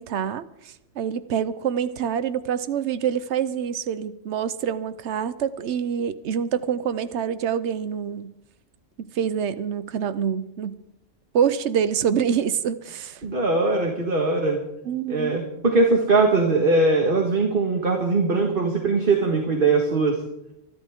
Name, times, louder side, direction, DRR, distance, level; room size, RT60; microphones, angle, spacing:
voice 1, 0.0-8.3 9.0-10.8 11.3-13.2 14.8-15.4, right 8 dB, 65° right, 13 dB, 1.1 m, -26 dB
voice 2, 13.2-14.6 15.1-20.2, right 3 dB, 45° right, 2 dB, 1.9 m, -21 dB
25.5 x 11.5 x 3.7 m, 0.83 s
omnidirectional pair, 1.3 m